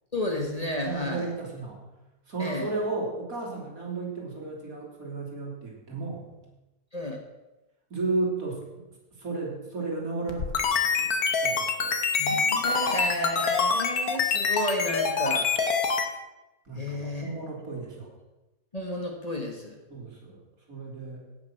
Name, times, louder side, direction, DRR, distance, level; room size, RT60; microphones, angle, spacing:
voice 1, 0.1-1.3 2.4-2.7 6.9-7.2 12.2-15.5 16.7-17.3 18.7-19.8, left 1 dB, 25° left, 1 dB, 1.6 m, -31 dB
voice 2, 0.8-1.8 2.3-6.2 7.9-8.8 9.1-11.9 12.4-12.5 16.6-18.1 19.9-20.4 20.7-21.2, right 3 dB, 70° right, -2 dB, 3.4 m, -34 dB
sound 1, 10.3-16.1, left 5 dB, 85° left, 1.7 m, -25 dB
16.5 x 6.1 x 5.9 m, 1.0 s
omnidirectional pair, 1.5 m